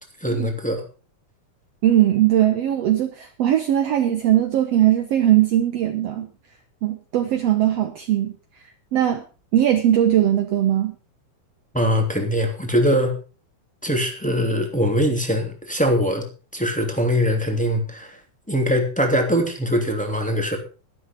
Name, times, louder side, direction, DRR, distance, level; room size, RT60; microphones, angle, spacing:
voice 1, 0.2-0.8 11.7-13.2 13.8-16.2 16.5-18.2 18.5-20.6, equal, 5° left, 3 dB, 2.5 m, -22 dB
voice 2, 1.8-6.3 6.8-8.4 8.9-9.2 9.5-11.0, right 12 dB, 60° right, 6 dB, 2.0 m, -19 dB
12.5 x 12.0 x 5.2 m, 0.36 s
omnidirectional pair, 3.5 m